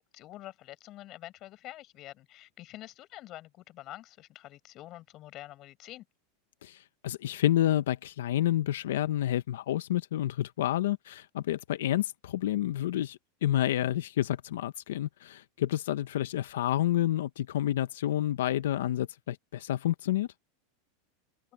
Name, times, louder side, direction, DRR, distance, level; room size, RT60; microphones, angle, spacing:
voice 1, 0.0-6.0, left 15 dB, 25° left, 7.6 m, -47 dB
voice 2, 6.6-20.3, left 12 dB, 85° left, 0.6 m, -29 dB
open air
supercardioid pair, 180°, 0 cm